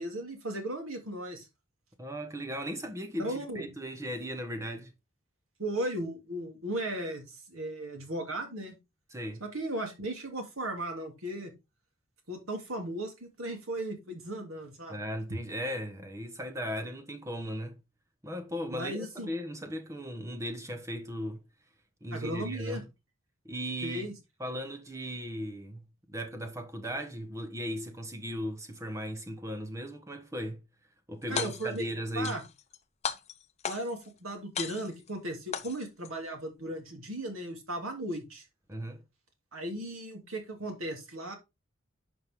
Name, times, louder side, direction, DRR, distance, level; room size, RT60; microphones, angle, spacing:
voice 1, 0.0-1.5 3.2-3.7 5.6-8.8 9.4-11.5 12.3-15.0 15.3-15.4 18.7-19.3 22.1-22.8 23.8-24.1 31.3-31.9 32.1-32.4 33.6-38.4 39.5-41.4, right 1 dB, 85° right, 3.1 m, -36 dB
voice 2, 2.0-4.9 9.1-9.4 14.9-17.8 18.2-21.4 22.0-22.9 23.4-24.1 24.4-30.6 31.1-32.4 38.7-39.0, equal, 15° right, 1.2 m, -37 dB
sound 1, 31.2-31.8 32.2-32.8 33.0-34.1 34.5-35.1 35.5-36.1, left 7 dB, 30° left, 0.6 m, -36 dB
10.5 x 5.3 x 3.7 m
head